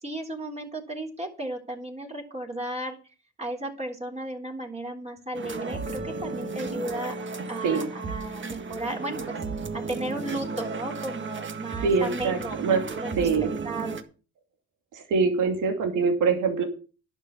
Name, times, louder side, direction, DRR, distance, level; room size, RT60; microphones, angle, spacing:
voice 1, 0.0-3.0 3.4-7.2 7.5-9.4 9.9-12.6 13.0-14.0, right 1 dB, 20° right, 0 dB, 3.6 m, -34 dB
sound 1, 5.3-14.0, right 4 dB, 40° right, 1.8 m, -34 dB
voice 2, 11.8-12.8 13.2-13.5 14.9-16.6, right 5 dB, 85° right, 4 dB, 2.7 m, -24 dB
11.0 x 6.4 x 8.3 m, 0.36 s
cardioid pair, 90°, 30 cm